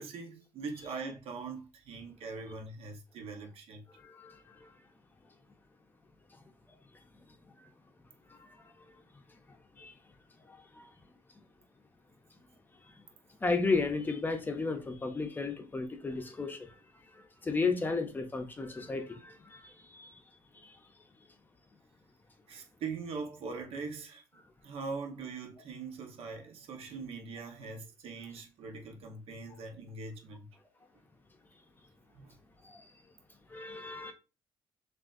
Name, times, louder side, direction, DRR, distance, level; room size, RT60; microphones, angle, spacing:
voice 1, 0.0-3.8 22.5-24.2 24.6-30.5 32.1-32.3, right 4 dB, 80° right, 0.8 m, -42 dB
voice 2, 3.9-4.7 8.3-8.7 9.8-9.9 10.5-10.9 13.4-16.8 17.1-20.2 20.5-20.8 32.6-32.9 33.5-34.1, left 4 dB, 20° left, 0.6 m, -34 dB
6.1 x 2.5 x 2.5 m
cardioid pair, 160°, 10 cm